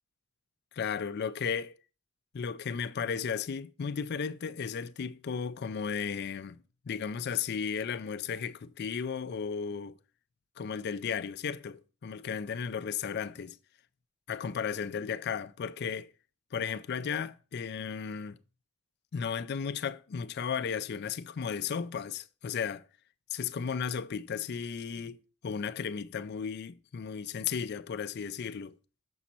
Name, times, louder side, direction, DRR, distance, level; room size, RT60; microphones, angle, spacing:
voice 1, 0.7-1.7 2.3-10.0 10.6-13.6 14.3-16.1 16.5-18.4 19.1-22.9 23.3-28.8, left 6 dB, 55° left, 0.4 m, -35 dB
7.2 x 6.2 x 4.3 m
head